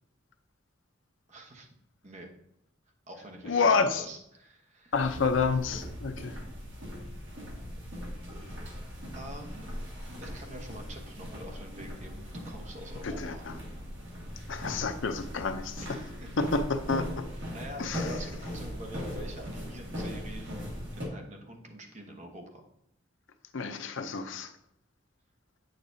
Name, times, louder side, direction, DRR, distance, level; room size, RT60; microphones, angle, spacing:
voice 1, 1.3-1.7 2.0-2.3 3.1-4.9 8.4-8.5 9.1-9.7 10.2-13.5 15.8-15.9 16.2-16.3 17.5-20.6 21.0-22.6, right 1 dB, 35° right, 3 dB, 1.0 m, -45 dB
voice 2, 3.4-4.1 4.9-6.4 13.0-13.5 14.5-16.0 16.4-17.1 17.8-18.1 23.5-24.5, left 4 dB, 65° left, 8 dB, 0.6 m, -29 dB
sound 1, 4.9-21.1, equal, 65° right, 2.0 m, -39 dB
8.4 x 6.5 x 2.7 m, 0.76 s
head